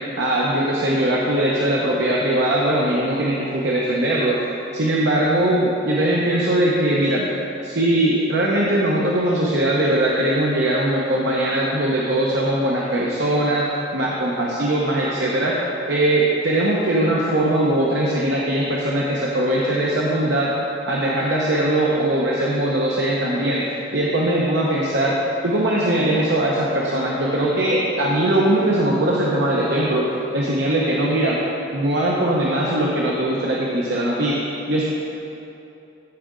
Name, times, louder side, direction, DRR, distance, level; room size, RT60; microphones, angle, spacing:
voice 1, 0.2-4.4 4.7-7.3 7.6-13.6 13.9-15.5 15.9-20.5 20.9-23.6 23.9-25.2 25.4-30.1 30.3-31.4 31.7-34.4 34.7-34.8, right 1 dB, 75° right, -4 dB, 0.8 m, -20 dB
13.5 x 4.9 x 3.8 m, 2.9 s
head